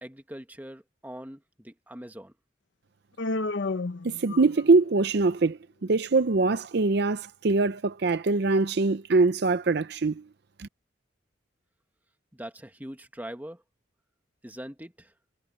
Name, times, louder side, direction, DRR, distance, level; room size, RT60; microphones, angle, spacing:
voice 1, 0.0-2.3 12.3-13.6 14.4-15.1, equal, 10° right, 1.5 m, -42 dB
Human voice, 3.2-4.9, left 3 dB, 70° left, 0.8 m, -31 dB
voice 2, 4.0-10.2 10.6-10.7, right 3 dB, 55° right, 0.6 m, -23 dB
head